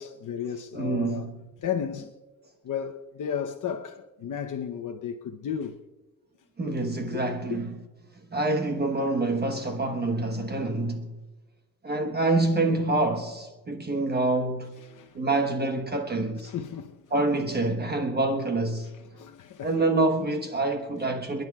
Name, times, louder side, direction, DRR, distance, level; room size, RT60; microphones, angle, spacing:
voice 1, 0.0-1.3 1.6-2.1 2.6-5.8 7.1-7.6 14.8-15.3 16.4-17.1 19.1-19.8, left 8 dB, 65° left, 0.9 m, -34 dB
voice 2, 0.7-1.4 6.6-7.7 8.3-11.1 11.8-14.8 15.1-16.5 17.1-18.9 19.6-21.4, right 2 dB, 30° right, 1.2 m, -26 dB
28.5 x 10.5 x 2.4 m
cardioid pair, 85°, 33 cm